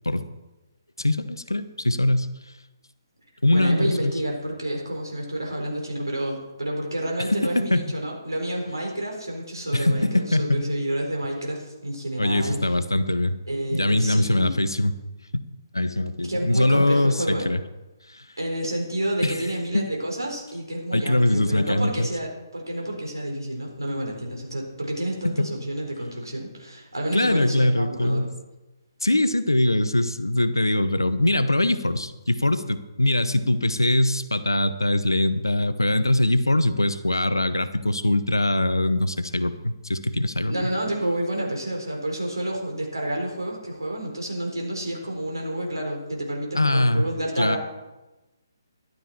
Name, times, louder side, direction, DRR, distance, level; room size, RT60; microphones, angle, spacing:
voice 1, 1.0-2.3 3.4-4.1 7.3-7.8 9.7-10.6 12.2-13.4 13.7-14.9 15.3-15.4 15.7-17.6 18.1-18.2 19.2-19.4 19.7-19.8 20.9-22.1 25.2-25.5 27.1-28.3 29.0-40.7 46.5-47.1 47.4-47.6, left 1 dB, 80° left, 12 dB, 0.9 m, -22 dB
voice 2, 3.5-12.7 13.5-14.6 16.2-17.5 18.4-28.3 40.5-47.6, right 1 dB, 75° right, 0 dB, 4.2 m, -29 dB
13.0 x 12.0 x 4.4 m, 1.1 s
figure-of-eight pair, 135°, 2 cm